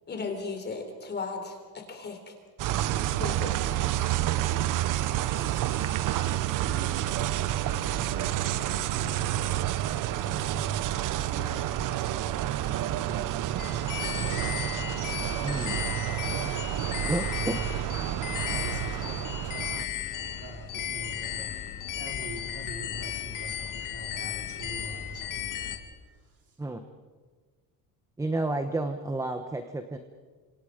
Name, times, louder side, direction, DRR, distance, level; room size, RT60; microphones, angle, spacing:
voice 1, 0.1-2.3 3.1-3.8, left 4 dB, 25° left, 5 dB, 3.7 m, -36 dB
sound 1, 2.6-19.9, right 13 dB, 50° right, 0.9 m, -29 dB
voice 2, 4.3-5.0 5.3-5.9 6.2-14.6 18.5-21.5 21.9-25.8 26.1-26.6, right 2 dB, 35° right, 1 dB, 4.7 m, -45 dB
sound 2, 13.6-25.8, left 10 dB, 50° left, 2.5 m, -35 dB
voice 3, 15.4-15.8 17.0-17.3 26.6-26.8 28.2-30.0, right 2 dB, 10° right, 7 dB, 1.0 m, -31 dB
29.0 x 26.5 x 5.1 m, 1.4 s
cardioid pair, 155°, 40 cm